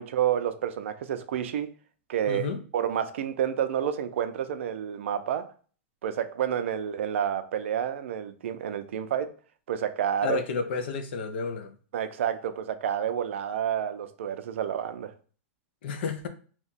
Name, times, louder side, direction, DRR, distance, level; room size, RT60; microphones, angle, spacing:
voice 1, 0.0-1.7 2.1-2.5 2.7-5.5 6.0-9.3 9.7-10.4 11.9-15.1, right 9 dB, 70° right, 0.4 m, -29 dB
voice 2, 2.3-2.6 10.2-11.7 15.8-16.3, left 5 dB, 55° left, 0.5 m, -31 dB
2.8 x 2.2 x 4.0 m
supercardioid pair, 175°, 7 cm